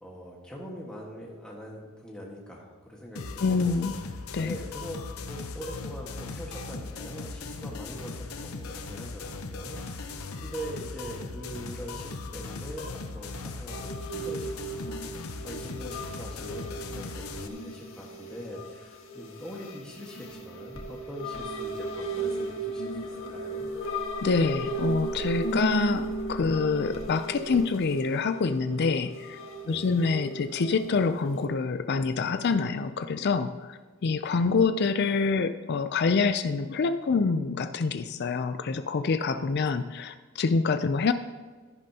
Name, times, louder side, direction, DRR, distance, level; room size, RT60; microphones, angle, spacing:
voice 1, 0.0-3.9 4.4-5.0 5.3-23.7 29.6-29.9, equal, 5° left, -4 dB, 1.5 m, -42 dB
sound 1, 3.2-17.5, left 3 dB, 80° left, 0.8 m, -38 dB
voice 2, 3.4-4.0 4.3-4.6 24.2-29.4 29.7-41.1, left 4 dB, 50° left, 10 dB, 0.4 m, -26 dB
sound 2, 13.7-31.5, right 2 dB, 65° left, 1.5 m, -35 dB
14.0 x 10.5 x 2.8 m, 1.4 s
head